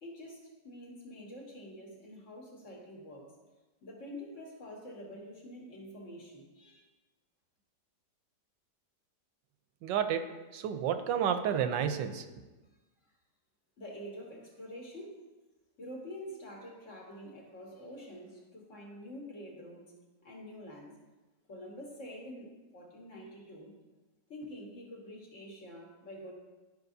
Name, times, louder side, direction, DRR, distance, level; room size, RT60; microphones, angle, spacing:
voice 1, 0.0-3.3 3.8-6.8 13.8-15.2 15.8-19.9 20.2-20.9 21.5-23.7 24.3-26.3, equal, 45° left, -2 dB, 1.6 m, -47 dB
voice 2, 9.8-12.2, right 8 dB, 90° right, 8 dB, 1.3 m, -31 dB
12.0 x 5.3 x 2.7 m, 1.2 s
omnidirectional pair, 1.9 m